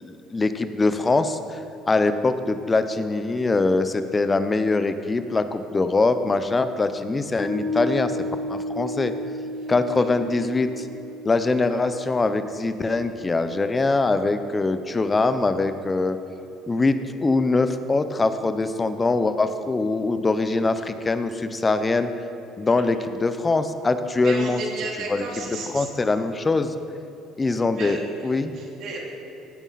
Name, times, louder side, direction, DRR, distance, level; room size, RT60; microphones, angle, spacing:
voice 1, 0.0-1.6 1.9-8.1 8.5-9.1 9.7-10.9 11.2-16.2 16.7-22.1 22.6-24.6 25.1-25.3 25.7-26.7 27.4-28.5, left 3 dB, 25° left, 10 dB, 0.9 m, -23 dB
Piano, 7.4-14.1, left 1 dB, 45° left, 2.8 m, -34 dB
voice 2, 24.2-25.9 27.7-29.0, right 3 dB, 60° right, -1 dB, 2.8 m, -33 dB
17.0 x 9.1 x 4.2 m, 3.0 s
hypercardioid pair, 65°, 0 cm